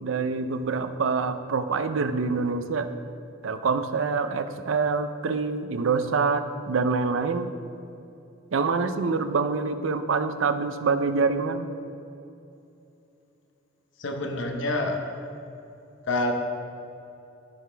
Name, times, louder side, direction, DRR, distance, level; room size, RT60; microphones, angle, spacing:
voice 1, 0.0-2.9 3.4-7.5 8.5-11.7, right 4 dB, 70° right, 10 dB, 0.5 m, -26 dB
voice 2, 14.0-14.9 16.1-16.3, left 2 dB, 65° left, 3 dB, 0.9 m, -27 dB
14.5 x 5.0 x 3.4 m, 2.8 s
head